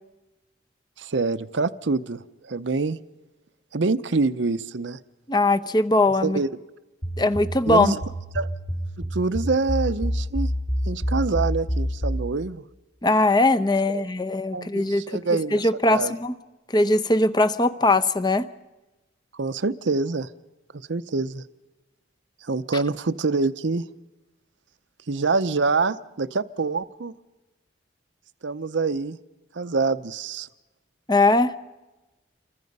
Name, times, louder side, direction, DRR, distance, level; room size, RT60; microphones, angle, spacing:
voice 1, 1.0-3.0 3.7-5.0 6.2-6.5 7.7-8.0 8.3-8.5 9.1-10.5 10.9-12.6 13.9-14.0 14.5-15.6 15.9-16.1 19.3-20.3 20.9-21.4 22.5-23.8 25.1-27.1 28.4-29.2 29.5-30.5, right 3 dB, 75° right, 14 dB, 0.7 m, -25 dB
voice 2, 5.3-6.4 7.2-7.9 13.0-15.2 15.5-16.4 16.7-18.5 31.1-31.6, left 2 dB, 25° left, 11 dB, 0.8 m, -20 dB
sound 1, 7.0-12.3, equal, 45° left, 4.1 m, -27 dB
28.5 x 24.0 x 5.4 m, 1.1 s
head